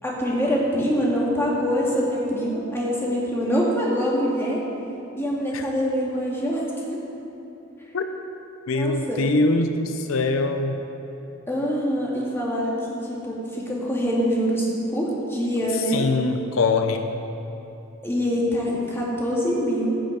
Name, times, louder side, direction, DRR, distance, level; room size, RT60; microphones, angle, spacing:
voice 1, 0.0-4.6 5.2-6.7 8.7-9.2 11.5-16.1 18.0-19.9, equal, 10° left, -5 dB, 2.0 m, -24 dB
voice 2, 8.7-10.9 15.7-17.1, left 3 dB, 85° left, 6 dB, 0.6 m, -23 dB
15.5 x 6.4 x 5.1 m, 3.0 s
head